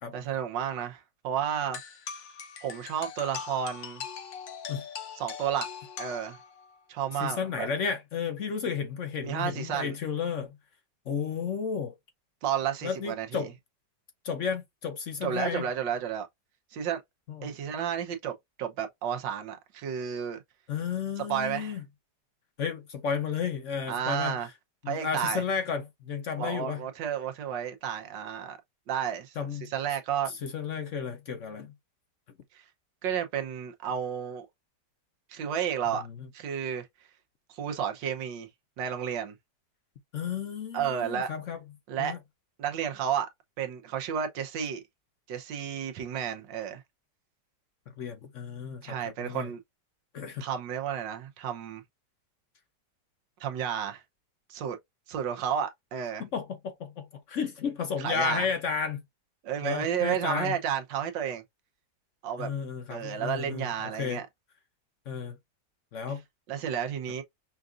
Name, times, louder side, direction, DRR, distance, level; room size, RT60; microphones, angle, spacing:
voice 1, 0.1-1.8 2.6-4.0 5.2-5.7 6.0-6.4 6.9-7.7 9.2-9.9 12.4-13.5 15.2-16.3 16.7-17.0 17.4-18.3 18.6-20.4 21.2-21.8 23.9-24.5 24.9-25.4 26.4-28.6 28.9-30.3 32.5-32.6 33.0-34.5 35.3-36.0 36.3-36.9 37.5-38.5 38.8-39.3 40.7-41.3 41.9-42.1 42.6-43.3 43.6-44.8 45.3-46.8 48.8-49.6 50.4-51.8 53.4-54.0 54.5-54.8 55.1-56.2 58.0-58.5 59.4-61.4 62.2-62.5 62.9-64.3 66.5-67.2, right 8 dB, 90° right, 1.6 m, -32 dB
sound 1, 1.7-6.7, left 7 dB, 85° left, 1.7 m, -41 dB
voice 2, 7.2-10.6 11.1-11.9 12.8-13.5 14.2-15.7 17.3-17.5 20.7-21.8 22.6-24.4 24.8-26.8 29.4-29.7 30.4-31.7 35.9-36.1 40.1-41.6 42.0-42.2 48.0-49.5 50.1-50.4 56.2-59.0 59.6-60.6 62.4-63.7 64.0-64.2 65.1-65.4 65.9-66.2, left 6 dB, 60° left, 0.8 m, -33 dB
5.7 x 2.5 x 2.4 m
omnidirectional pair, 1.9 m